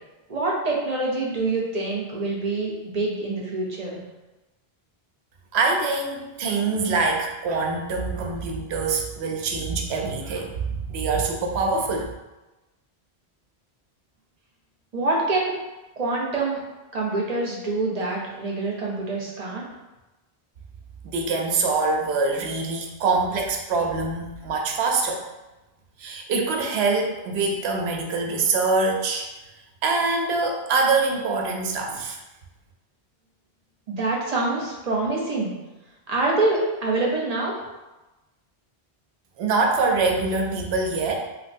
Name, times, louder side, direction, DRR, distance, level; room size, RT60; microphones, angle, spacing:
voice 1, 0.3-4.0 14.9-15.5 16.0-16.6 16.9-19.6 33.9-35.5 36.1-37.5, right 2 dB, 45° right, -3 dB, 0.7 m, -25 dB
voice 2, 5.5-12.1 21.0-25.2 26.0-29.3 29.8-32.2 39.4-41.2, right 3 dB, 85° right, 1 dB, 0.8 m, -24 dB
3.1 x 2.9 x 2.6 m, 1.1 s
omnidirectional pair, 1.1 m